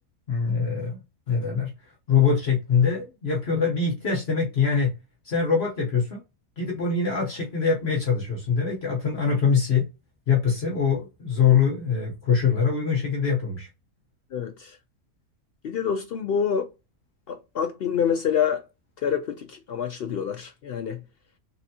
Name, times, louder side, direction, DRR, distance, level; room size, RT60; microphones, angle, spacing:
voice 1, 0.3-1.0 1.3-1.7 2.1-4.9 5.2-6.2 6.6-9.9 10.3-13.7, left 6 dB, 50° left, 1.2 m, -23 dB
voice 2, 14.3-14.8 15.6-16.7 17.3-18.6 19.0-21.0, left 7 dB, 70° left, 0.5 m, -27 dB
4.2 x 3.4 x 2.8 m
omnidirectional pair, 1.5 m